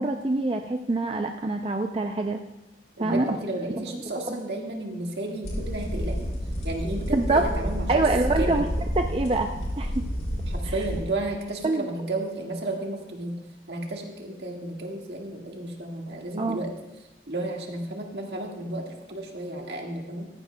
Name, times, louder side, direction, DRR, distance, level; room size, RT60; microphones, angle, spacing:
voice 1, 0.0-2.4 3.0-3.4 7.1-7.4 7.9-8.7 9.0-9.5 9.8-10.0 10.6-10.7 11.6-11.9 16.4-16.6, right 2 dB, 30° right, 4 dB, 0.4 m, -25 dB
voice 2, 3.0-6.3 6.6-8.0 8.4-8.6 10.5-13.4 13.7-16.7 17.3-20.3, right 2 dB, 70° right, 0 dB, 1.8 m, -33 dB
sound 1, 5.4-11.0, equal, 40° left, 4.6 m, -30 dB
14.5 x 14.5 x 2.2 m, 1.0 s
head